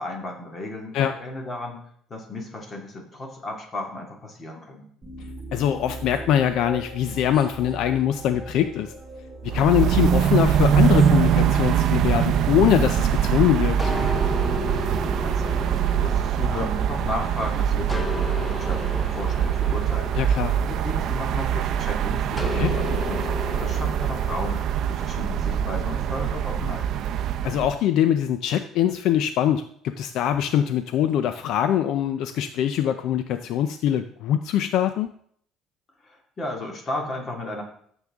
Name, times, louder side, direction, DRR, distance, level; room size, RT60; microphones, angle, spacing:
voice 1, 0.0-1.8 2.1-4.9 15.2-18.3 18.6-20.2 20.6-23.3 23.6-26.9 36.0-37.6, left 2 dB, 30° left, 1 dB, 2.1 m, -34 dB
sound 1, 5.0-16.6, right 2 dB, 15° right, 2.3 m, -41 dB
voice 2, 5.5-8.9 9.5-13.9 20.2-20.5 22.5-22.7 27.4-35.1, left 10 dB, 65° left, 10 dB, 0.5 m, -23 dB
sound 2, 9.5-27.8, right 9 dB, 55° right, 0.6 m, -23 dB
sound 3, 13.8-17.4 17.9-21.6 22.4-25.0, left 3 dB, 10° left, 0.7 m, -34 dB
13.0 x 7.2 x 3.6 m, 0.64 s
cardioid pair, 150°, 0 cm